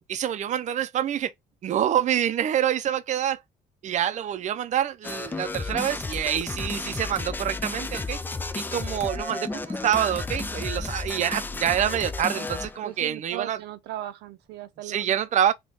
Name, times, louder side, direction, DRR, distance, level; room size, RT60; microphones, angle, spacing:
voice 1, 0.1-1.3 1.6-3.4 3.8-8.2 8.5-13.6 14.8-15.5, right 10 dB, 45° right, 0.5 m, -26 dB
sound 1, 5.0-12.9, left 3 dB, 10° left, 0.3 m, -32 dB
voice 2, 12.8-15.2, right 13 dB, 85° right, 0.7 m, -37 dB
3.5 x 2.4 x 3.9 m
cardioid pair, 110°, 17 cm